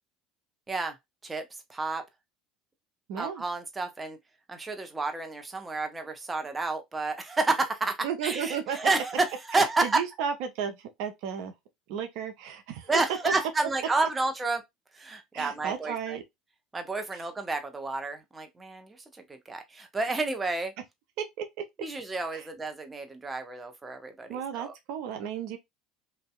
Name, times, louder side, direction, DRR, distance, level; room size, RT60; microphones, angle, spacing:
voice 1, 1.2-2.0 3.2-4.2 4.5-8.0 8.2-10.0 12.9-14.6 14.9-16.2 16.7-20.7 21.8-24.7, right 3 dB, 20° right, 0.6 m, -30 dB
voice 2, 3.1-3.4 8.0-8.8 9.5-11.5 11.9-12.9 13.2-13.3 15.3-16.2 17.1-17.2 21.2-21.5 22.3-22.5 24.3-25.6, right 8 dB, 70° right, 0.5 m, -34 dB
2.6 x 2.1 x 2.2 m
hypercardioid pair, 80°, 0 cm